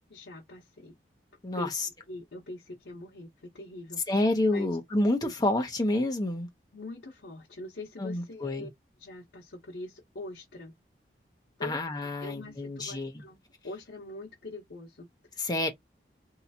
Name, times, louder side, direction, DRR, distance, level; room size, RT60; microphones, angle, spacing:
voice 1, 0.1-1.0 1.5-1.8 2.1-4.2 4.5-4.8 5.2-5.3 6.7-8.7 9.0-10.8 11.6-11.8 12.2-15.6, left 2 dB, 80° left, 0.9 m, -43 dB
voice 2, 4.1-6.5 8.0-8.7 11.6-13.2 15.4-15.7, left 1 dB, 25° left, 0.8 m, -28 dB
3.1 x 2.8 x 2.7 m
head